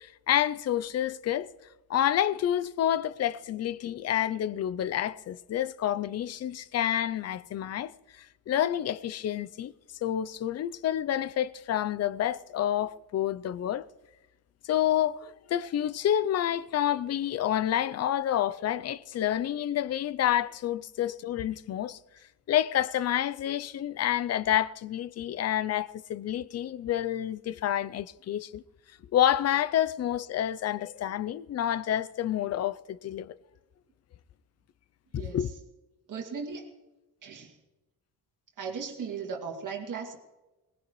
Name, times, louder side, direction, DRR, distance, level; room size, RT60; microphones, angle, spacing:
voice 1, 0.0-1.5 1.9-7.9 8.2-9.7 10.0-13.9 14.6-22.0 22.5-28.6 29.1-33.3 35.1-35.5, left 11 dB, 45° left, 0.4 m, -28 dB
voice 2, 35.1-35.5 36.1-36.7 37.2-37.6 38.6-40.2, right 5 dB, 55° right, 2.3 m, -37 dB
21.5 x 19.0 x 3.1 m
wide cardioid pair, 165°, 38 cm